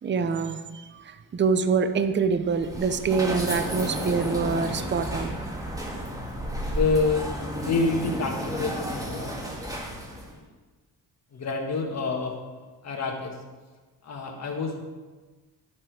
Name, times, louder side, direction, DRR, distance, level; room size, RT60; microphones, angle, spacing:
voice 1, 0.0-5.4, right 5 dB, 25° right, 0.6 m, -25 dB
sound 1, 2.5-10.3, equal, 10° right, 1.9 m, -32 dB
voice 2, 6.7-9.4 10.3-10.4 11.3-13.4 14.0-14.8, left 3 dB, 40° left, 1.5 m, -28 dB
11.0 x 6.2 x 4.7 m
cardioid pair, 110°, 42 cm